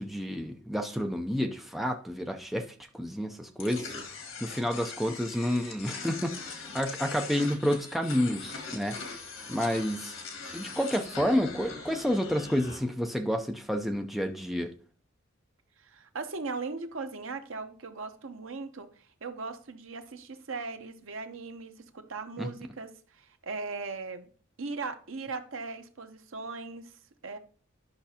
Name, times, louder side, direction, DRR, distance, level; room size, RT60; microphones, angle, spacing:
voice 1, 0.0-2.7 2.9-3.9 4.4-9.0 9.5-10.1 10.5-14.7 22.4-22.5, equal, ahead, 0.6 m, -30 dB
sound 1, 3.6-12.8, left 4 dB, 80° left, 1.8 m, -41 dB
voice 2, 15.8-24.3 24.6-27.4, right 4 dB, 75° right, 0.9 m, -39 dB
10.5 x 5.9 x 2.8 m
head